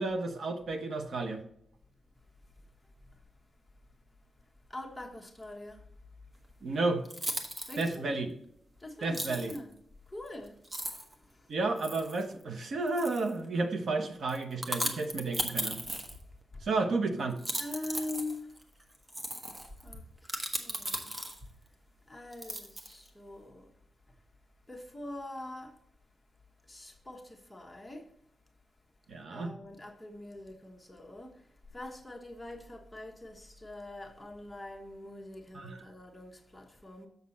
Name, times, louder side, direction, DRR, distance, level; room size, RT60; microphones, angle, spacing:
voice 1, 0.0-1.4 6.6-7.0 7.8-8.3 9.0-9.5 11.5-15.8 16.6-17.4 29.1-29.5 35.5-35.8, right 3 dB, 70° right, 1.0 m, -32 dB
voice 2, 4.7-5.8 6.6-6.7 7.7-8.1 8.8-9.7 10.1-10.6 10.8-11.6 16.5-16.6 17.6-18.6 19.8-21.1 22.1-23.7 24.7-25.8 26.6-28.1 29.3-37.1, left 1 dB, 10° left, 1.2 m, -44 dB
sound 1, 6.5-6.6 7.1-8.0 9.1-9.6 10.3-10.4 10.6-11.1 11.8-12.2 12.9-13.4 14.3-16.4 17.3-21.6 22.3-23.1, right 1 dB, 30° right, 1.1 m, -37 dB
6.8 x 6.5 x 4.1 m
wide cardioid pair, 120°, 0 cm